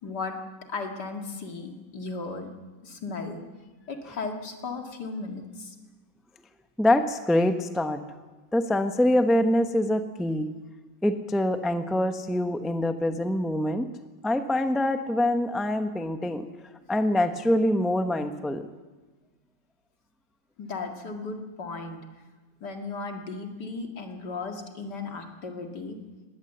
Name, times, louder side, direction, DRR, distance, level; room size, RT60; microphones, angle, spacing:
voice 1, 0.0-0.4 0.7-2.5 2.8-3.4 3.9-5.8 20.6-22.0 22.6-26.0, left 3 dB, 65° left, 4 dB, 2.7 m, -35 dB
voice 2, 6.8-8.0 8.5-10.5 11.0-13.9 14.2-18.7, left 1 dB, ahead, 7 dB, 0.6 m, -25 dB
20.5 x 17.5 x 7.9 m, 1.3 s
omnidirectional pair, 2.0 m